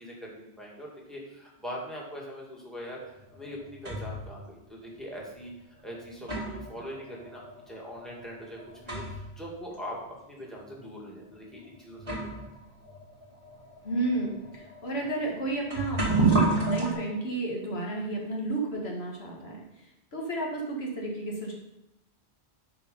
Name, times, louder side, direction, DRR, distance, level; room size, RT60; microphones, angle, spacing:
voice 1, 0.0-5.5 5.8-10.0 10.3-12.5, equal, ahead, -4 dB, 2.1 m, -42 dB
sound 1, 3.2-4.3 5.2-5.3 5.9-9.4 9.7-9.8 10.6-10.7 11.5-11.6 12.0-16.9, right 2 dB, 30° right, 1.6 m, -31 dB
voice 2, 13.8-21.5, right 2 dB, 70° left, -2 dB, 1.9 m, -32 dB
10.5 x 4.7 x 5.4 m, 0.90 s
omnidirectional pair, 1.1 m